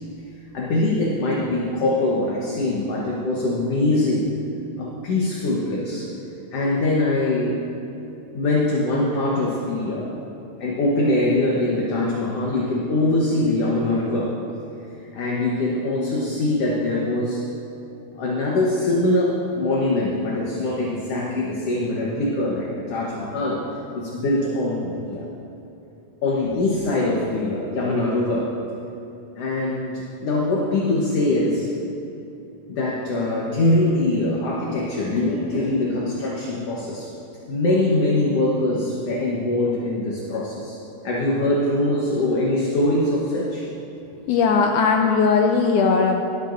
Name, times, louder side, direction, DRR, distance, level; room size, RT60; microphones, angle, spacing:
voice 1, 0.5-4.3 4.8-6.1 6.5-7.7 8.3-10.2 10.6-14.4 15.1-17.4 18.1-23.7 23.9-25.3 26.2-28.5 29.4-31.7 32.7-37.1 37.5-40.8 41.0-43.7, left 2 dB, 60° left, -4 dB, 1.7 m, -23 dB
voice 2, 44.3-46.2, left 5 dB, 80° left, 3 dB, 1.9 m, -18 dB
20.0 x 10.5 x 2.6 m, 2.9 s
omnidirectional pair, 4.0 m